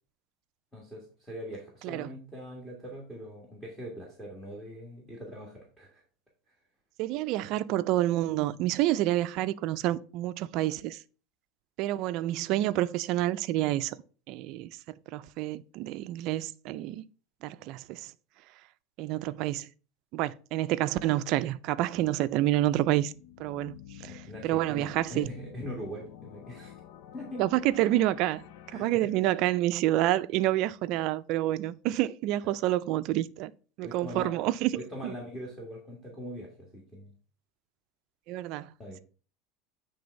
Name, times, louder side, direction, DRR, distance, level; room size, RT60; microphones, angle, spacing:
voice 1, 0.7-6.0 24.0-26.8 27.1-27.6 28.7-28.9 32.4-32.6 33.8-34.3 34.7-37.1 38.8-39.0, equal, 10° left, 1.7 m, -42 dB
voice 2, 7.0-11.0 11.8-14.0 14.3-17.0 17.4-18.1 19.0-19.7 20.1-23.1 23.4-25.3 27.4-28.4 28.7-33.5 33.8-34.7 35.0-35.1 38.3-38.7, right 15 dB, 50° right, 0.4 m, -28 dB
sound 1, 21.9-28.9, left 10 dB, 65° left, 0.6 m, -50 dB
8.7 x 3.4 x 5.2 m
supercardioid pair, 150°, 0 cm